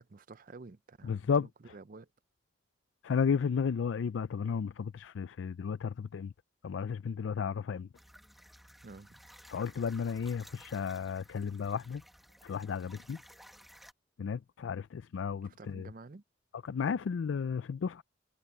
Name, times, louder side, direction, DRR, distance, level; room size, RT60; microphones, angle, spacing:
voice 1, 0.0-2.1 8.8-9.2 15.4-16.2, right 3 dB, 45° right, 0.6 m, -51 dB
voice 2, 1.1-1.5 3.0-6.3 6.6-7.9 9.5-12.0 12.4-13.2 14.2-15.9 16.7-18.0, left 6 dB, 80° left, 0.4 m, -33 dB
sound 1, 7.9-13.9, equal, ahead, 1.0 m, -56 dB
head